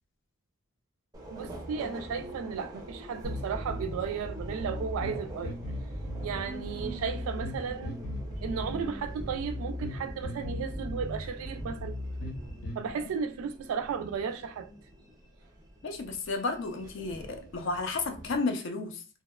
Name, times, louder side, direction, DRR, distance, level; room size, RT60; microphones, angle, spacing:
Subway metro underground, 1.1-18.4, right 1 dB, 15° right, 0.4 m, -46 dB
voice 1, 1.3-5.6 6.2-8.0 8.4-11.9 12.8-14.7, right 6 dB, 85° right, 0.3 m, -34 dB
sound 1, 3.2-12.8, equal, 80° left, 0.8 m, -37 dB
voice 2, 15.8-19.0, left 3 dB, 60° left, 0.4 m, -32 dB
2.7 x 2.0 x 2.2 m
head